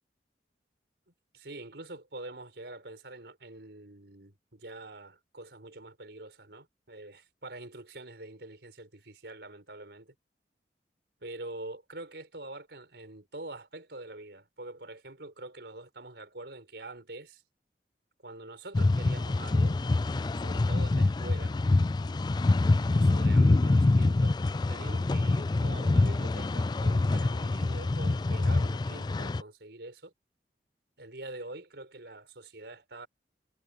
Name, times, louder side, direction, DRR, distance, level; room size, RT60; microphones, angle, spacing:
voice 1, 1.3-10.1 11.2-17.4 18.2-19.8 20.4-21.6 22.9-24.4 24.7-30.1 31.0-33.1, right 2 dB, 70° right, 4.6 m, -45 dB
sound 1, 18.7-29.4, left 2 dB, 25° left, 0.3 m, -25 dB
head